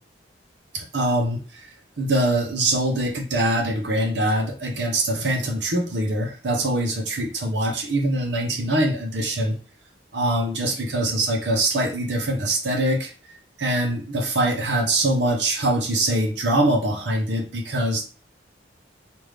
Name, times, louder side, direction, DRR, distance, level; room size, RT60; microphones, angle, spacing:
voice 1, 0.7-9.6 10.1-13.1 13.6-18.0, right 1 dB, 70° right, 3 dB, 0.8 m, -23 dB
3.5 x 2.5 x 3.2 m, 0.35 s
head